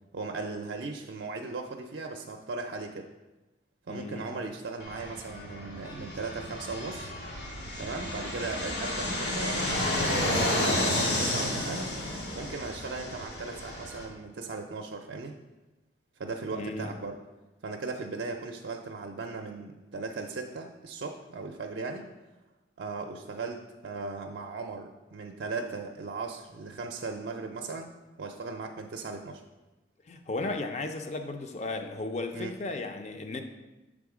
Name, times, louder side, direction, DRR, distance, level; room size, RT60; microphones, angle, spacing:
voice 1, 0.1-3.1 3.9-7.1 7.8-11.9 12.3-15.3 16.2-17.2 17.6-22.1 22.8-27.9 28.2-29.4 32.3-32.5, right 3 dB, 70° right, 2 dB, 0.4 m, -37 dB
voice 2, 3.9-4.3 16.5-16.9 30.1-33.4, left 2 dB, 40° left, 6 dB, 0.5 m, -35 dB
Fixed-wing aircraft airplane, 4.8-14.1, left 1 dB, 70° left, 1.4 m, -31 dB
6.9 x 3.7 x 4.8 m, 1.1 s
head